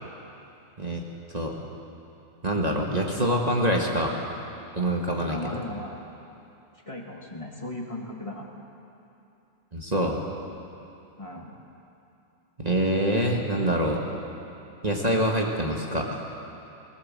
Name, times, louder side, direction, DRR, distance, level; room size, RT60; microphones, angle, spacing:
voice 1, 2.4-4.1 4.7-5.4 9.7-10.2 12.6-14.0 14.8-16.3, right 1 dB, 30° right, 0 dB, 1.7 m, -25 dB
voice 2, 3.2-3.9 5.3-6.0 6.9-8.5 11.2-11.5, left 1 dB, 25° left, -1 dB, 1.9 m, -37 dB
19.0 x 19.0 x 7.5 m, 2.8 s
omnidirectional pair, 1.3 m